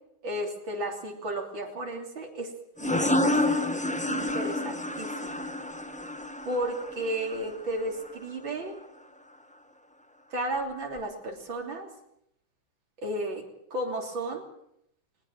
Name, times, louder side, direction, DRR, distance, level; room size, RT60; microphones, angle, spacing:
voice 1, 0.2-2.5 2.8-3.7 4.1-5.5 6.5-8.8 10.3-11.9 13.0-13.4 13.7-14.4, right 1 dB, 85° right, 2 dB, 4.0 m, -33 dB
sound 1, 2.8-8.1, left 1 dB, 5° left, 0.7 m, -29 dB
20.5 x 20.0 x 7.3 m, 0.76 s
omnidirectional pair, 2.1 m